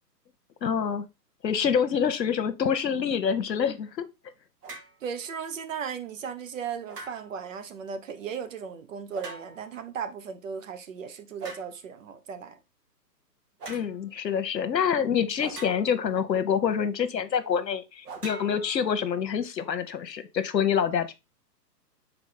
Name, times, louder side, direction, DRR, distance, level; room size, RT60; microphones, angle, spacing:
voice 1, 0.6-1.0 1.4-4.0 13.7-21.1, left 7 dB, 80° left, 1.1 m, -26 dB
sound 1, 4.6-5.0 6.9-7.5 9.1-9.8 11.4-11.8 13.6-13.9 15.4-16.1 18.0-19.2, right 3 dB, 70° right, 2.5 m, -42 dB
voice 2, 5.0-12.6, right 6 dB, 50° right, 1.0 m, -36 dB
5.9 x 4.2 x 3.8 m
hypercardioid pair, 140°, 49 cm